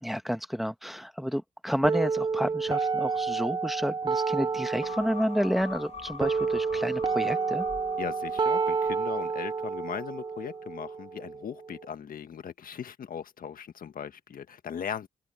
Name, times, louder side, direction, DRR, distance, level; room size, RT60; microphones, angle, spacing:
voice 1, 0.0-7.6, equal, ahead, 1.8 m, -30 dB
sound 1, 1.8-11.8, right 5 dB, 30° right, 0.4 m, -30 dB
sound 2, 4.8-9.5 9.9-10.0, left 6 dB, 45° left, 1.2 m, -44 dB
voice 2, 8.0-15.1, left 8 dB, 65° left, 1.6 m, -38 dB
supercardioid pair, 55°, 16 cm